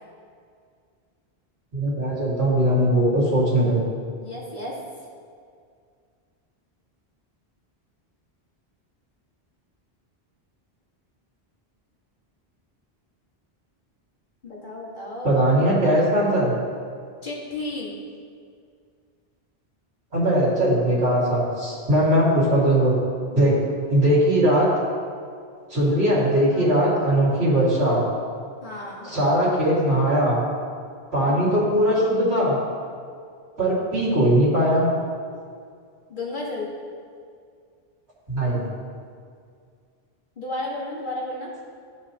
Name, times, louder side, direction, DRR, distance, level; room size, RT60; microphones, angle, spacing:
voice 1, 1.7-3.8 15.2-16.5 20.1-22.9 23.3-23.5 23.9-24.7 25.7-28.0 29.0-30.4 31.1-32.6 33.6-34.9 38.3-38.6, right 1 dB, 80° right, -7 dB, 2.4 m, -20 dB
voice 2, 4.2-4.8 14.4-15.4 17.2-17.9 23.3-23.5 26.5-26.6 28.6-29.1 36.1-36.7 40.4-41.5, left 2 dB, 50° left, -5 dB, 1.7 m, -33 dB
14.5 x 4.8 x 2.9 m, 2.2 s
omnidirectional pair, 1.1 m